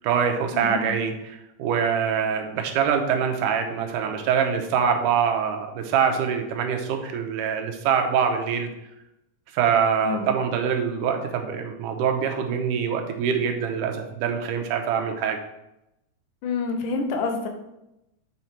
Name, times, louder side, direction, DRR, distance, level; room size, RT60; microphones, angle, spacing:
voice 1, 0.0-8.7 9.5-15.4, right 7 dB, 85° right, 4 dB, 2.4 m, -24 dB
voice 2, 0.5-0.9 10.0-10.3 16.4-17.5, left 4 dB, 90° left, 4 dB, 2.5 m, -27 dB
7.8 x 4.4 x 4.3 m, 0.88 s
omnidirectional pair, 3.6 m